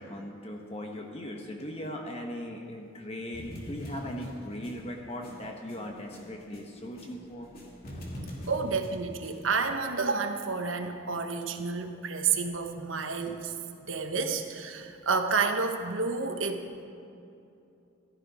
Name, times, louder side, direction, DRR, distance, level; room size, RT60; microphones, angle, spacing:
voice 1, 0.0-7.5, left 1 dB, 30° left, 2 dB, 1.1 m, -39 dB
sound 1, 3.3-7.1 7.4-9.3, equal, 50° left, 2.5 m, -42 dB
voice 2, 8.5-13.5 13.8-16.7, right 4 dB, 75° right, 5 dB, 1.2 m, -30 dB
15.5 x 12.5 x 5.0 m, 2.6 s
head